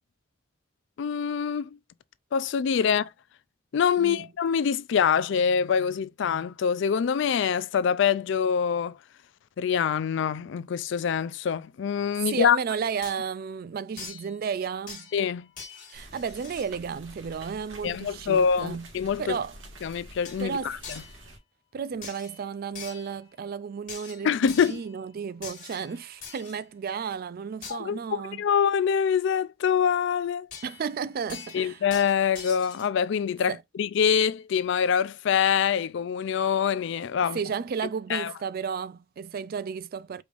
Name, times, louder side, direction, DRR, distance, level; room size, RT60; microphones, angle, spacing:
voice 1, 1.0-1.7 2.3-3.1 3.7-9.0 9.6-12.6 15.1-15.5 17.8-19.4 19.8-20.8 24.2-24.8 27.7-28.0 28.4-30.5 31.5-33.5 33.8-37.4 38.1-38.3, left 7 dB, 65° left, 0.3 m, -25 dB
voice 2, 4.0-4.3 12.2-15.1 15.9-18.9 19.2-19.6 20.4-20.8 21.7-28.4 30.6-31.8 33.5-33.6 37.3-40.2, right 6 dB, 50° right, 0.4 m, -33 dB
sound 1, 13.0-13.2 14.0-14.3 14.9-15.3 15.6-16.8 20.2-20.4 20.8-21.2 22.0-22.4 22.7-23.2 23.9-24.9 25.4-26.6 27.6-27.8 30.5-30.9 31.3-32.9, left 5 dB, 45° left, 1.6 m, -43 dB
sound 2, 15.9-21.4, right 1 dB, 70° right, 1.7 m, -48 dB
4.9 x 3.5 x 2.4 m
head